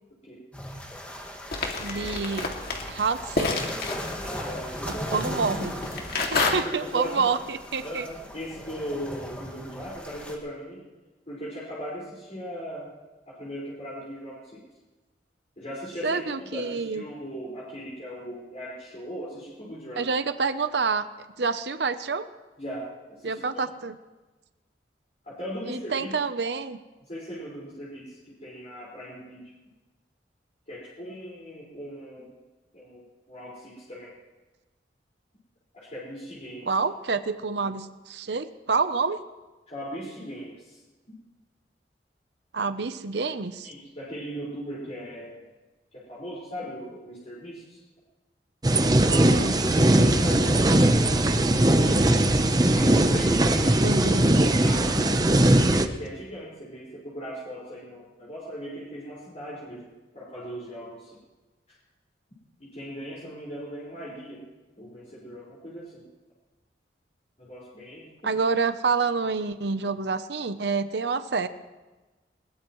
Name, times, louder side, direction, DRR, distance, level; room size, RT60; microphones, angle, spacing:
sound 1, 0.5-10.4, equal, 10° left, 2.0 m, -38 dB
sound 2, 1.5-6.5, left 3 dB, 60° left, 2.4 m, -30 dB
voice 1, 1.8-2.5 2.9-3.5 5.1-5.7 6.3-8.1 16.0-17.0 20.0-21.1 21.4-22.3 23.2-24.0 25.7-26.8 36.7-39.2 42.5-43.7 49.1-49.6 53.8-54.2 68.2-71.5, right 4 dB, 70° right, 11 dB, 0.7 m, -27 dB
voice 2, 4.2-5.2 6.1-6.5 6.8-7.2 7.8-10.8 11.3-12.9 13.3-14.6 15.6-20.1 22.6-23.4 25.2-26.1 27.1-29.4 30.7-32.3 32.7-34.1 35.7-36.7 39.7-40.8 43.6-45.4 45.9-47.8 48.8-52.2 52.7-53.8 54.1-54.3 54.6-55.2 56.0-59.9 60.1-61.2 62.6-64.4 64.8-66.0 67.4-68.1, equal, 40° left, -7 dB, 5.1 m, -38 dB
sound 3, 48.6-55.9, right 1 dB, 20° right, 0.8 m, -20 dB
21.5 x 20.5 x 3.1 m, 1.2 s
head